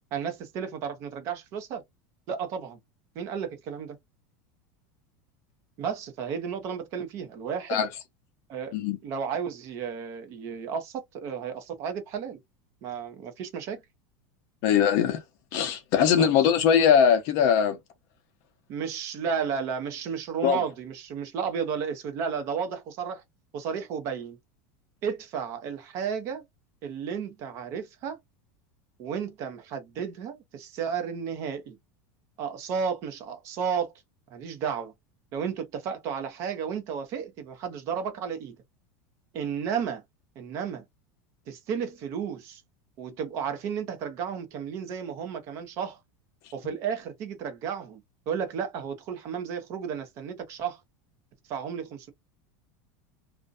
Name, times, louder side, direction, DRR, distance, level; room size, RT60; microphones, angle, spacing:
voice 1, 0.1-1.8 2.3-2.8 3.2-4.0 5.8-7.8 8.5-8.7 9.0-12.4 12.8-13.8 16.2-16.3 18.7-23.2 23.5-24.4 25.0-26.4 26.8-28.2 29.0-31.8 32.4-33.9 34.3-34.9 35.3-38.6 39.3-40.0 40.4-40.8 41.5-42.6 43.0-46.0 46.5-50.8 51.5-52.1, right 7 dB, 35° right, 0.6 m, -33 dB
voice 2, 14.6-15.2 15.5-17.8 20.4-20.6, left 8 dB, 40° left, 0.6 m, -21 dB
2.5 x 2.1 x 2.4 m
supercardioid pair, 175°, 9 cm